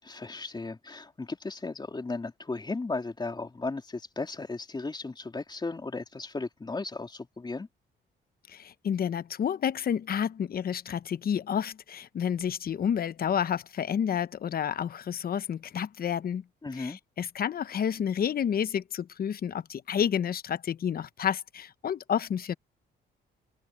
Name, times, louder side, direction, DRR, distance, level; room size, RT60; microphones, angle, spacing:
voice 1, 0.0-7.7 16.6-17.0, left 3 dB, 20° left, 3.6 m, -35 dB
voice 2, 8.5-16.4 16.8-22.5, left 8 dB, 50° left, 0.8 m, -30 dB
cardioid pair, 90°, 20 cm